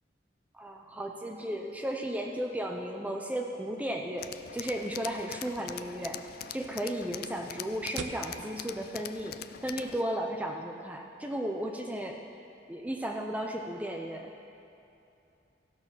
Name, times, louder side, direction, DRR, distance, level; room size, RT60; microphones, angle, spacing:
voice 1, 0.5-12.2 12.7-14.3, right 1 dB, 10° right, 2 dB, 0.6 m, -35 dB
Tools, 4.2-10.0, left 9 dB, 55° left, 0.3 m, -43 dB
sound 1, 4.5-9.9, right 4 dB, 75° right, 0.6 m, -48 dB
15.5 x 6.3 x 5.7 m, 2.7 s
head